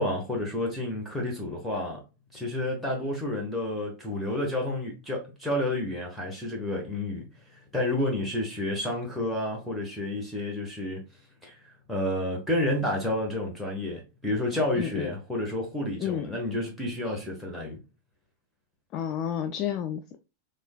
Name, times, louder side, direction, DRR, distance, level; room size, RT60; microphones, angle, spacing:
voice 1, 0.0-2.0 2.3-11.0 11.4-11.6 11.9-17.8, left 1 dB, ahead, 1.1 m, -30 dB
voice 2, 14.8-15.1 16.0-16.4 18.9-20.2, left 9 dB, 35° left, 0.3 m, -31 dB
3.7 x 3.1 x 2.3 m
figure-of-eight pair, 90°, 0 cm